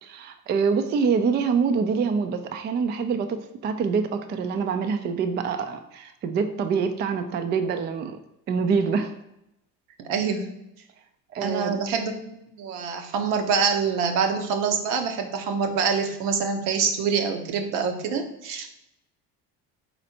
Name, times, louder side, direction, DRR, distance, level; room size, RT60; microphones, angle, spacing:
voice 1, 0.0-8.2 8.5-9.1 11.3-11.8, right 5 dB, 25° right, 8 dB, 0.3 m, -25 dB
voice 2, 10.1-10.5 11.4-18.7, right 5 dB, 70° right, 5 dB, 0.8 m, -25 dB
4.3 x 4.1 x 2.7 m, 0.86 s
hypercardioid pair, 60°, 48 cm